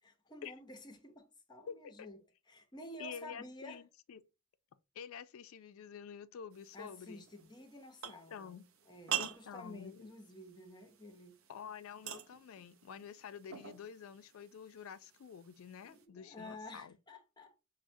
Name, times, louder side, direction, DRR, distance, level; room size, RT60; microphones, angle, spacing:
voice 1, 0.0-2.2 2.5-3.8 6.7-8.6 8.9-11.4 15.8-17.5, left 1 dB, 20° left, 0.6 m, -51 dB
voice 2, 1.7-2.1 3.0-4.2 4.9-7.2 8.0-8.7 9.1-10.1 11.5-16.9, left 7 dB, 70° left, 0.4 m, -49 dB
sound 1, 6.5-16.0, right 10 dB, 65° right, 0.5 m, -47 dB
6.0 x 2.1 x 2.6 m
head